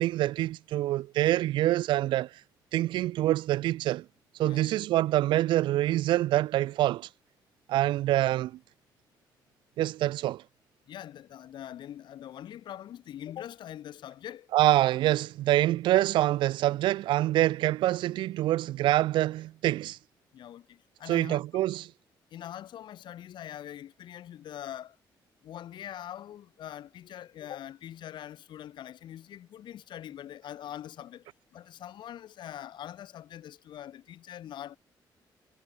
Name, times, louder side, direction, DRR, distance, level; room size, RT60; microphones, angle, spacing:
voice 1, 0.0-2.3 2.7-4.1 4.4-7.1 7.7-8.6 9.8-10.4 14.5-20.0 21.1-21.8, right 15 dB, 90° right, 0.4 m, -25 dB
voice 2, 4.4-4.7 10.9-14.5 20.3-21.4 22.3-25.0 25.4-34.8, left 11 dB, 75° left, 2.1 m, -43 dB
cardioid pair, 100°, 8 cm